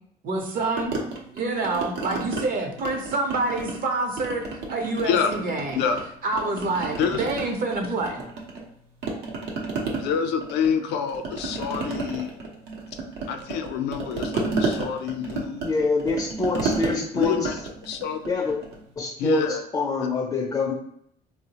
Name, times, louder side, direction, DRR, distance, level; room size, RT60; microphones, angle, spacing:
voice 1, 0.2-0.9 1.3-5.8 6.2-8.2, right 2 dB, 55° right, 3 dB, 0.7 m, -27 dB
sound 1, 0.8-2.4 2.8-3.9 4.2-6.0 6.3-8.7 9.0-18.8, right 3 dB, 90° right, 0.7 m, -31 dB
voice 2, 5.0-5.3 5.7-6.0 7.0-7.2 10.0-12.3 13.3-15.7 16.9-18.2 19.2-19.6 20.0-20.1, left 7 dB, 90° left, 6 dB, 0.4 m, -27 dB
voice 3, 15.6-17.5 18.3-18.6 19.0-20.7, left 3 dB, 25° left, 0 dB, 0.4 m, -25 dB
3.8 x 2.0 x 2.8 m, 0.71 s
cardioid pair, 110°, 17 cm